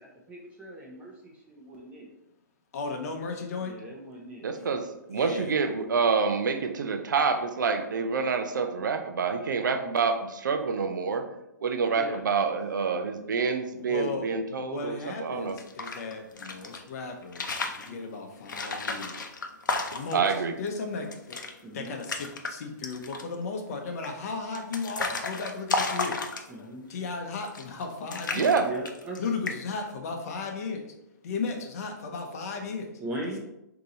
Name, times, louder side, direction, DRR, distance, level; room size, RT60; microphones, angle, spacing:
voice 1, 0.0-2.1 3.6-4.5 11.9-12.2 17.6-17.9 21.6-21.9 26.5-27.2 28.6-29.2 33.0-33.4, right 1 dB, 10° right, -3 dB, 0.8 m, -40 dB
voice 2, 2.7-3.8 4.6-4.7 5.1-5.5 13.8-14.3 14.6-19.3 19.9-21.4 21.7-26.2 26.9-28.6 29.2-31.0 31.2-33.0, left 4 dB, 50° left, 3 dB, 0.8 m, -35 dB
voice 3, 4.4-11.3 11.6-15.6 20.1-20.5 28.3-28.7, right 5 dB, 75° right, 7 dB, 0.5 m, -27 dB
sound 1, 15.5-16.8 17.2-17.9 18.5-20.3 20.7-20.8 21.0-21.5 21.8-22.5 22.8-23.4 24.0-26.7 27.4-27.8 28.1-29.2 29.5-29.8, left 3 dB, 80° left, 0.6 m, -33 dB
3.7 x 2.9 x 3.8 m, 0.89 s
hypercardioid pair, 130°, 10 cm